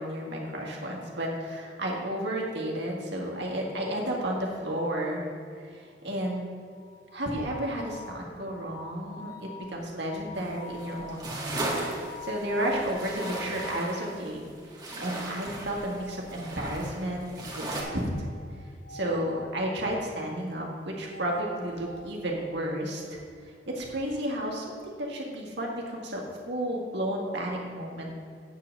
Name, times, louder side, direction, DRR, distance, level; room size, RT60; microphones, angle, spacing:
voice 1, 0.0-6.5 7.1-14.5 15.0-18.0 18.9-26.2 26.5-28.1, right 1 dB, 65° right, -2 dB, 1.9 m, -32 dB
sound 1, 6.2-14.3 15.6-16.8 17.6-19.6 20.8-22.1, left 3 dB, 50° left, 0.6 m, -46 dB
sound 2, 10.3-17.8, right 2 dB, 25° right, 1.6 m, -37 dB
8.8 x 5.7 x 6.7 m, 2.3 s
head